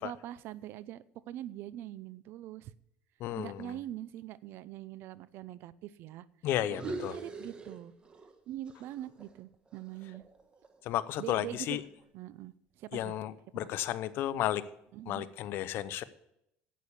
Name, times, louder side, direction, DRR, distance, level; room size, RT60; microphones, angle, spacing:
voice 1, 0.0-2.7 3.3-6.2 6.8-7.9 8.5-10.2 11.2-11.8 12.1-13.1 14.9-15.3, right 13 dB, 65° right, 18 dB, 0.5 m, -43 dB
voice 2, 3.2-3.7 6.4-7.2 10.8-11.8 12.9-14.6 15.1-16.0, left 12 dB, 60° left, 15 dB, 0.7 m, -33 dB
sound 1, 6.6-8.4 8.7-10.9, right 2 dB, 25° right, 1.3 m, -44 dB
9.3 x 8.4 x 7.2 m, 0.80 s
cardioid pair, 115°, 4 cm